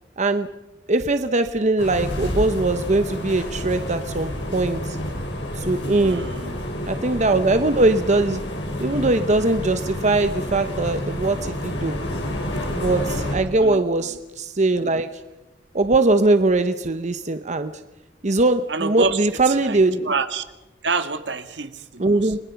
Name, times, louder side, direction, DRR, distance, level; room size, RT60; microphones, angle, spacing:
voice 1, 0.2-0.5 0.9-5.0 5.6-6.3 6.8-8.4 8.8-12.0 12.7-15.1 15.7-17.7 18.2-20.1 22.0-22.4, right 2 dB, 40° right, 9 dB, 0.9 m, -21 dB
sound 1, 1.8-13.4, left 1 dB, 80° left, 6.1 m, -29 dB
voice 2, 6.0-6.6 13.6-14.2 18.7-19.2 19.5-19.8 20.1-20.4 20.8-22.3, right 4 dB, 75° right, 9 dB, 1.7 m, -27 dB
29.5 x 21.5 x 5.8 m, 1.0 s
head